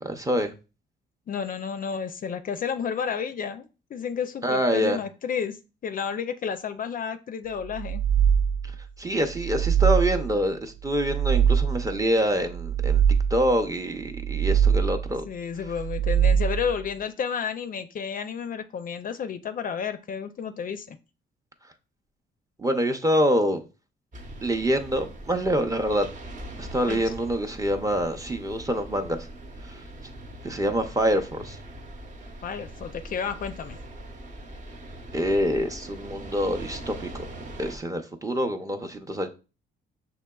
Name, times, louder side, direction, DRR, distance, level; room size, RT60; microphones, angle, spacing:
voice 1, 0.0-0.5 4.4-5.0 9.0-13.0 13.3-15.2 22.6-23.6 24.4-26.1 26.6-29.3 30.4-31.6 35.1-37.2 37.6-39.3, equal, 15° right, 0.5 m, -26 dB
voice 2, 1.3-8.0 15.3-21.0 26.9-27.0 32.4-33.8, left 7 dB, 45° left, 0.4 m, -31 dB
sound 1, 7.7-8.8 9.3-10.4 10.9-12.0 12.5-13.6 14.1-15.1 15.7-16.8, right 8 dB, 75° right, 0.5 m, -23 dB
sound 2, 24.1-37.8, right 1 dB, 40° right, 0.8 m, -41 dB
6.4 x 2.9 x 2.3 m
cardioid pair, 90°, 20 cm